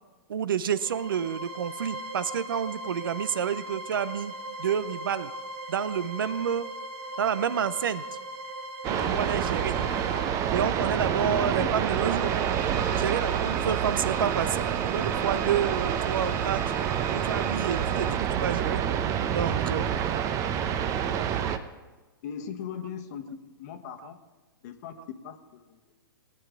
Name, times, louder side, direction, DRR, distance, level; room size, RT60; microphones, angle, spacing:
voice 1, 0.3-4.3 4.6-5.3 5.7-6.7 7.2-8.0 8.9-9.8 10.5-12.4 12.9-16.6 17.1-18.8 19.3-19.9 22.4-23.4 24.0-24.1, right 8 dB, 65° right, 17 dB, 0.6 m, -29 dB
sound 1, 0.7-18.1, right 2 dB, 50° right, 2.5 m, -40 dB
sound 2, 8.8-21.6, right 9 dB, 25° right, 0.7 m, -27 dB
voice 2, 11.2-11.7 22.2-24.2 24.6-24.9 25.2-26.1, left 9 dB, 45° left, 7 dB, 1.2 m, -39 dB
19.0 x 9.2 x 3.6 m, 1.2 s
figure-of-eight pair, 115°, 12 cm